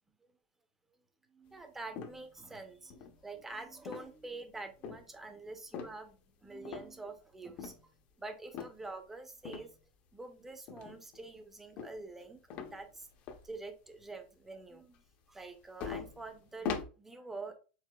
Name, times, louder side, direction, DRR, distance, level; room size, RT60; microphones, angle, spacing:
voice 1, 1.3-7.7 8.2-9.7 10.1-13.1 13.4-17.6, right 3 dB, 5° right, 7 dB, 0.6 m, -46 dB
sound 1, 1.9-2.5 2.9-3.4 3.8-4.3 4.8-5.1 5.7-6.1 6.6-7.2 7.6-7.8 8.5-8.8 9.5-9.7 10.7-11.2 11.8-12.2 12.5-13.5 13.9-14.0 15.4-15.5 15.8-16.9, left 6 dB, 35° left, 0.6 m, -41 dB
4.7 x 3.8 x 2.2 m, 0.33 s
supercardioid pair, 170°, 5 cm